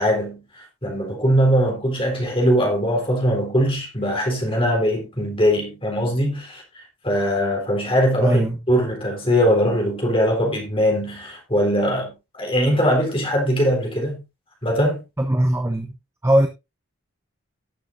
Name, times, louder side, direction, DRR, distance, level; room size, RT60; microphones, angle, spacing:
voice 1, 0.0-8.4 8.7-14.2 14.6-15.0, equal, 25° left, 3.9 m, -21 dB
voice 2, 8.2-8.6 15.2-15.9 16.2-16.5, right 1 dB, 10° right, 0.8 m, -19 dB
18.0 x 6.9 x 2.6 m
head